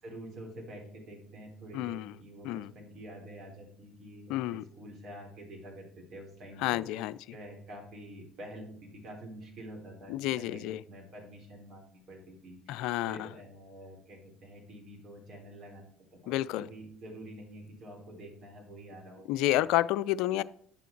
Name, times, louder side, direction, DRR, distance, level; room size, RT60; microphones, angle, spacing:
voice 1, 0.0-7.0 7.3-19.3 19.6-19.7, right 1 dB, 55° right, -1 dB, 3.8 m, -47 dB
voice 2, 1.7-2.1 2.4-2.7 4.3-4.6 6.6-7.2 10.1-10.8 12.7-13.3 16.3-16.7 19.3-20.4, left 15 dB, 70° left, 17 dB, 0.3 m, -30 dB
10.0 x 6.9 x 4.5 m, 0.66 s
hypercardioid pair, 65°, 0 cm